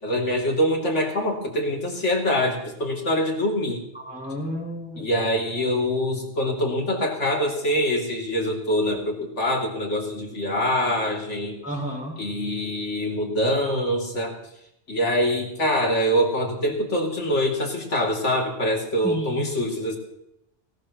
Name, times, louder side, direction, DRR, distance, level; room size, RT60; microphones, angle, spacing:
voice 1, 0.0-3.8 5.0-11.6 12.2-14.4 14.9-20.0, equal, 70° left, 0 dB, 3.1 m, -24 dB
voice 2, 3.9-5.1 11.6-12.2 19.0-19.6, equal, 5° right, -5 dB, 5.1 m, -32 dB
18.5 x 18.0 x 3.0 m, 0.81 s
omnidirectional pair, 1.3 m